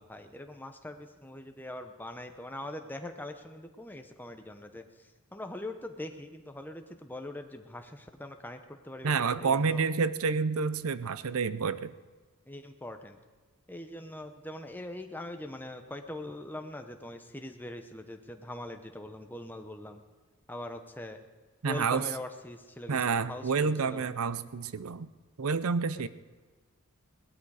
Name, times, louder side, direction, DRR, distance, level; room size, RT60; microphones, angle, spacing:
voice 1, 0.0-4.8 5.3-9.8 12.5-13.2 13.7-20.0 20.5-21.2 21.6-24.1 26.0-26.1, left 1 dB, 10° left, 6 dB, 0.8 m, -42 dB
voice 2, 9.0-11.9 21.6-22.1 22.9-25.1 25.4-26.1, right 5 dB, 75° right, 15 dB, 0.6 m, -29 dB
18.5 x 12.5 x 4.9 m, 1.4 s
head